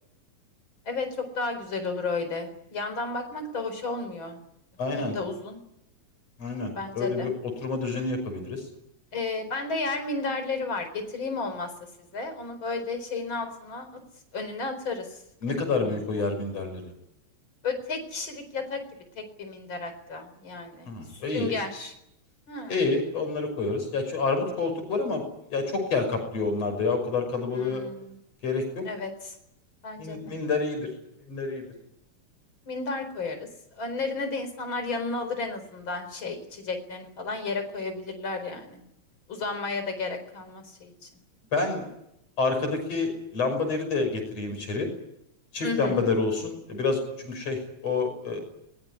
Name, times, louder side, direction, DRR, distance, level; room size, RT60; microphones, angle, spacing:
voice 1, 0.8-4.4 5.0-5.6 6.6-7.3 9.1-11.7 12.1-13.9 14.3-15.2 15.5-16.0 17.6-18.8 19.2-20.9 21.3-21.9 22.5-22.9 27.5-28.2 28.8-29.3 29.8-30.4 32.7-33.5 33.8-38.8 39.3-41.1 45.6-46.1, left 3 dB, 40° left, 7 dB, 5.0 m, -33 dB
voice 2, 4.8-5.1 6.4-7.3 7.6-8.6 15.4-16.8 20.9-21.5 22.7-25.2 25.5-27.8 28.4-28.8 30.0-30.9 31.3-31.6 41.5-41.8 42.4-44.9 45.5-48.4, left 3 dB, 55° left, 6 dB, 7.1 m, -28 dB
22.5 x 21.0 x 9.9 m, 0.80 s
omnidirectional pair, 3.3 m